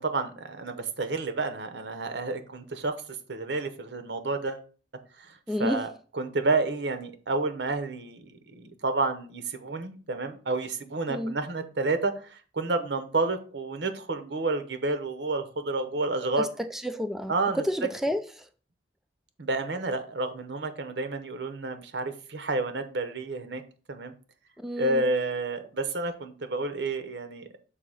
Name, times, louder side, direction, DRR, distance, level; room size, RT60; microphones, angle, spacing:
voice 1, 0.0-3.0 3.3-4.6 5.2-5.3 5.6-5.9 6.1-8.2 8.5-16.5 17.3-17.6 19.4-23.6 23.9-24.1 24.8-27.4, right 3 dB, 75° right, 0.9 m, -30 dB
voice 2, 5.5-5.9 11.1-11.4 16.4-18.5 24.6-25.1, equal, ahead, 0.3 m, -30 dB
6.5 x 2.8 x 5.6 m
head